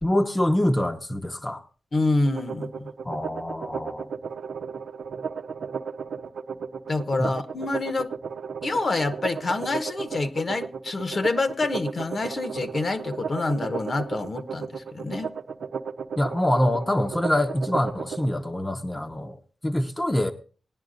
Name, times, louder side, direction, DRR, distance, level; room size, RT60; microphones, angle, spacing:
voice 1, 0.0-1.6 3.0-4.1 7.2-7.4 16.2-20.3, left 1 dB, 15° left, 0.8 m, -25 dB
voice 2, 1.9-2.9 6.9-8.1 8.6-15.3, left 2 dB, 50° left, 1.2 m, -27 dB
sound 1, 2.3-18.3, right 6 dB, 85° right, 0.7 m, -34 dB
19.0 x 10.5 x 2.5 m
wide cardioid pair, 100°, 0 cm